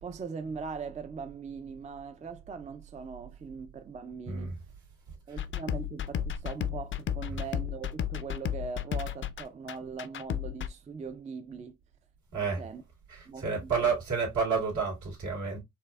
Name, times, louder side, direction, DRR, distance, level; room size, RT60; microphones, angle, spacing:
voice 1, 0.0-4.5 5.3-11.8 12.4-12.8 13.3-13.7, right 5 dB, 25° right, 0.4 m, -41 dB
voice 2, 4.3-4.6 5.3-5.4 7.3-7.4 12.3-12.6 13.1-15.6, right 5 dB, 70° right, 2.1 m, -30 dB
sound 1, 5.4-10.7, left 10 dB, 40° left, 0.4 m, -34 dB
4.4 x 2.6 x 2.2 m
cardioid pair, 90°, 30 cm